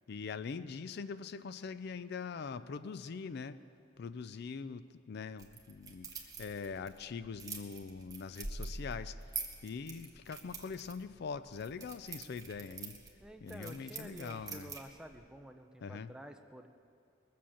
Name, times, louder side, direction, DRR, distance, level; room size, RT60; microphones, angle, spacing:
voice 1, 0.1-3.6 4.0-6.1 6.4-9.2 9.6-13.0 13.4-14.7 15.8-16.1, left 5 dB, 55° left, 14 dB, 0.4 m, -42 dB
sound 1, 5.4-15.2, right 4 dB, 20° right, 1.3 m, -46 dB
voice 2, 13.2-16.7, right 1 dB, 5° right, 6 dB, 0.6 m, -50 dB
20.5 x 7.6 x 7.2 m, 2.4 s
head